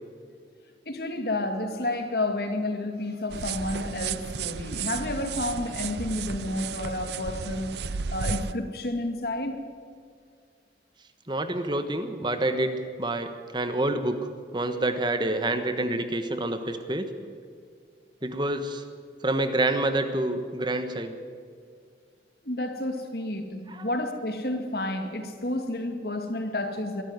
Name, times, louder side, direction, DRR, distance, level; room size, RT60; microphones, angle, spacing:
voice 1, 0.9-7.8 8.1-9.6 22.4-27.0, left 1 dB, 60° left, 6 dB, 2.1 m, -30 dB
sound 1, 3.3-8.5, right 6 dB, 70° right, 0.5 m, -33 dB
voice 2, 11.3-17.1 18.2-18.8 19.2-21.1 23.7-23.9, right 1 dB, 25° right, 8 dB, 1.3 m, -28 dB
22.5 x 13.0 x 9.5 m, 2.2 s
head